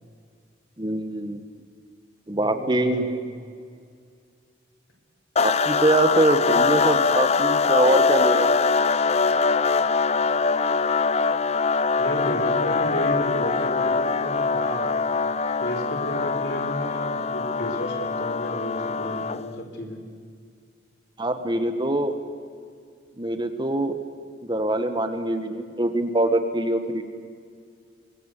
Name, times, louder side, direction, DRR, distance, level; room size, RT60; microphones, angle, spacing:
voice 1, 0.8-1.4 2.3-3.2 5.4-8.5 21.2-22.1 23.2-23.9 24.4-27.0, right 1 dB, 25° right, 8 dB, 1.4 m, -23 dB
voice 2, 2.3-3.1 12.0-14.9 15.6-20.0, equal, 60° left, 5 dB, 4.1 m, -32 dB
sound 1, 5.4-19.6, left 4 dB, 35° left, 0.6 m, -23 dB
24.5 x 22.5 x 8.3 m, 2.2 s
head